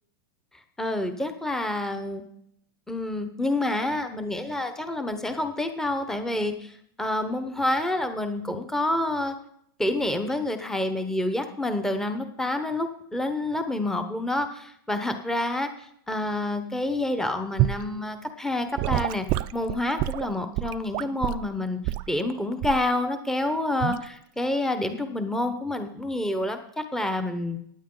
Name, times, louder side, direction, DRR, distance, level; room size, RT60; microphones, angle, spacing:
voice 1, 0.8-2.2 2.9-9.3 9.8-19.3 19.5-27.6, left 1 dB, 5° left, 7 dB, 1.0 m, -28 dB
Gurgling / Sink (filling or washing) / Liquid, 17.6-17.9 18.8-21.5 21.8-22.1 22.6-22.9 23.8-24.0, right 16 dB, 40° right, 0.4 m, -27 dB
16.0 x 9.4 x 3.9 m, 0.70 s
supercardioid pair, 130°, 12 cm